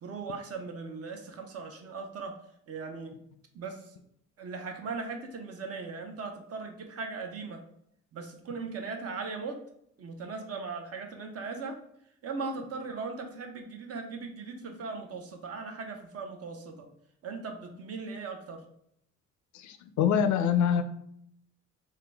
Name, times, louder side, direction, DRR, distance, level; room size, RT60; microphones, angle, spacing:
voice 1, 0.0-2.3 2.7-3.2 3.5-3.9 4.4-7.6 8.1-9.6 10.0-11.8 12.2-16.9 17.2-18.6, right 4 dB, 50° right, 4 dB, 0.7 m, -38 dB
voice 2, 19.5-20.8, left 8 dB, 70° left, 9 dB, 0.5 m, -25 dB
3.7 x 2.1 x 3.4 m, 0.71 s
cardioid pair, 90°, 30 cm